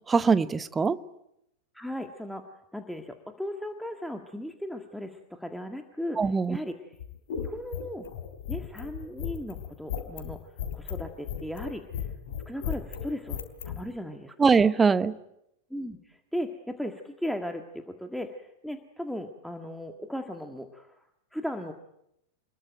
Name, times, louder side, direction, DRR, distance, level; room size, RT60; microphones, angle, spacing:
voice 1, 0.1-1.0 6.2-6.6 14.4-15.1, right 5 dB, 15° right, 15 dB, 1.0 m, -22 dB
voice 2, 1.7-2.4 2.7-6.2 6.5-7.0 7.4-8.1 8.5-10.4 10.7-11.8 12.4-13.4 13.6-14.5 15.7-20.9 21.3-21.7, equal, ahead, 5 dB, 1.8 m, -36 dB
sound 1, 6.9-13.8, left 8 dB, 55° left, 3.4 m, -35 dB
27.5 x 21.5 x 9.1 m, 0.81 s
figure-of-eight pair, 90°, 0 cm